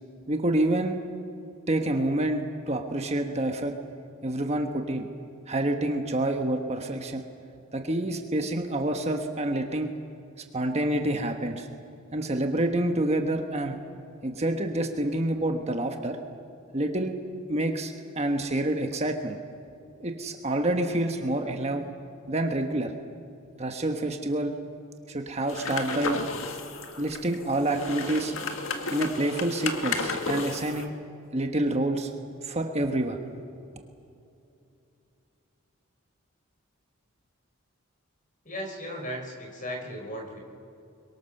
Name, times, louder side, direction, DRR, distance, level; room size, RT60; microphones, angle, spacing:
voice 1, 0.3-1.0 1.7-3.7 4.2-5.1 5.5-7.2 7.7-9.9 10.5-11.7 12.1-13.8 14.2-16.2 16.7-17.1 17.5-19.4 20.0-21.9 22.3-22.9 23.6-24.5 25.1-26.2 27.0-28.3 28.9-30.9 31.3-32.1 32.4-33.2, right 1 dB, 30° right, 4 dB, 1.4 m, -27 dB
sound 1, 25.5-30.8, left 3 dB, 65° left, 1.7 m, -33 dB
voice 2, 38.4-40.4, equal, 40° left, 2 dB, 4.8 m, -36 dB
29.5 x 23.0 x 6.7 m, 2.7 s
head